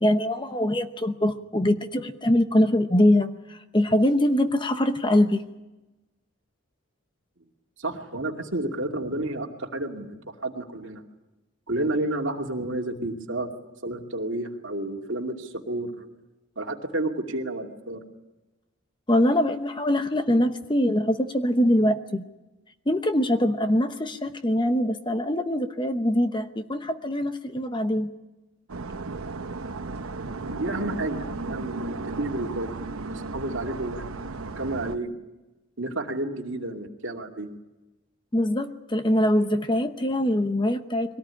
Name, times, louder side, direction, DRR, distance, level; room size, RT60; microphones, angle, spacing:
voice 1, 0.0-5.4 19.1-22.2 22.9-28.1 38.3-41.2, left 1 dB, 20° left, 8 dB, 0.9 m, -23 dB
voice 2, 7.8-11.0 11.7-13.5 13.8-16.1 16.6-18.0 30.3-32.7 33.0-35.1 35.8-37.5, right 2 dB, 60° right, 2 dB, 2.6 m, -31 dB
sound 1, 28.7-35.0, right 3 dB, 80° right, 0.9 m, -35 dB
23.5 x 18.0 x 9.8 m, 1.1 s
head